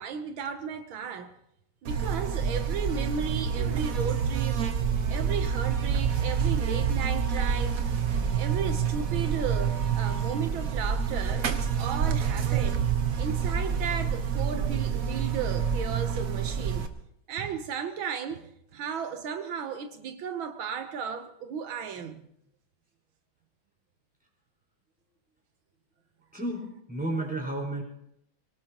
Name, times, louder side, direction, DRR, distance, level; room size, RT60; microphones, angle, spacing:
voice 1, 0.0-1.3 1.8-4.6 5.1-7.8 8.4-12.9 13.2-16.9 17.3-22.2, right 6 dB, 85° right, 1.8 m, -35 dB
Buzz, 1.8-16.9, right 7 dB, 50° right, 1.3 m, -27 dB
voice 2, 26.3-27.8, right 1 dB, 5° right, 4.9 m, -32 dB
23.5 x 18.0 x 3.0 m
omnidirectional pair, 2.1 m